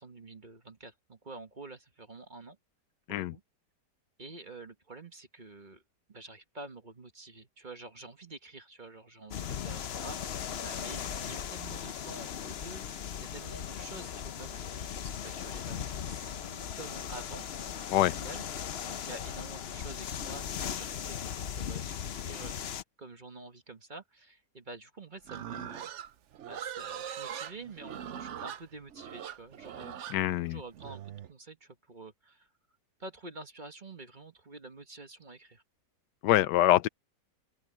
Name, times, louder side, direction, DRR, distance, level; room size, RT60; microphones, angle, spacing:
voice 1, 0.0-2.6 3.1-3.4 4.2-5.8 6.1-17.5 18.1-25.9 26.5-30.2 30.4-32.5 33.0-35.6, right 2 dB, 30° right, 1.4 m, -48 dB
sound 1, 9.3-22.8, left 8 dB, 55° left, 0.7 m, -38 dB
Livestock farm animals working animals, 25.2-31.3, right 9 dB, 60° right, 0.8 m, -41 dB
voice 2, 30.1-30.6 36.2-36.9, left 14 dB, 90° left, 1.2 m, -25 dB
open air
omnidirectional pair, 1.8 m